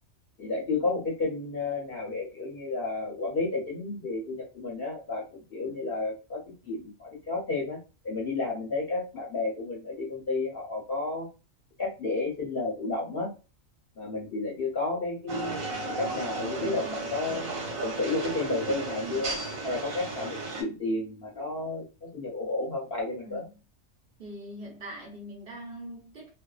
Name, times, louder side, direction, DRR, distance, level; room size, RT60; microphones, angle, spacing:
voice 1, 0.4-5.2 5.5-7.8 8.0-11.3 11.8-13.3 14.0-15.6 16.0-17.5 17.8-19.3 19.6-23.4, left 3 dB, 50° left, 0.8 m, -31 dB
sound 1, 15.3-20.6, right 3 dB, 85° right, 1.2 m, -34 dB
voice 2, 24.2-26.3, equal, 50° right, 0.9 m, -43 dB
2.5 x 2.3 x 2.3 m
omnidirectional pair, 1.4 m